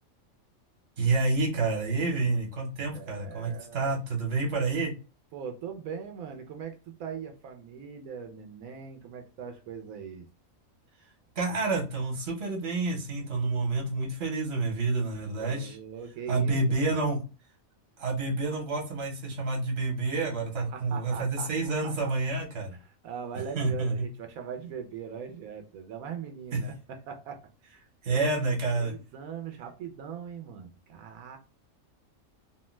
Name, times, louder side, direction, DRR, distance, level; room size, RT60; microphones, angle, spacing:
voice 1, 1.0-4.9 11.4-15.8 16.3-17.2 18.0-22.7 23.6-24.1 26.5-26.6 28.0-28.9, right 3 dB, 50° right, 1.2 m, -28 dB
voice 2, 2.9-3.9 5.3-10.3 15.3-17.0 20.7-21.9 22.8-28.3 28.8-31.4, right 7 dB, 90° right, 1.0 m, -41 dB
2.6 x 2.1 x 3.0 m
omnidirectional pair, 1.4 m